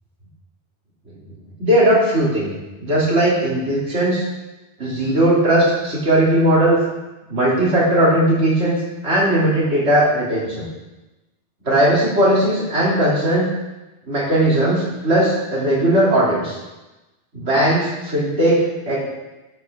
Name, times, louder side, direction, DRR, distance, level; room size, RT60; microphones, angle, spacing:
voice 1, 1.6-2.5 2.8-4.2 4.8-6.8 7.3-10.7 11.6-13.5 14.1-16.6 17.3-19.1, right 1 dB, 75° right, -6 dB, 3.2 m, -18 dB
11.5 x 7.6 x 3.6 m, 1.1 s
omnidirectional pair, 1.1 m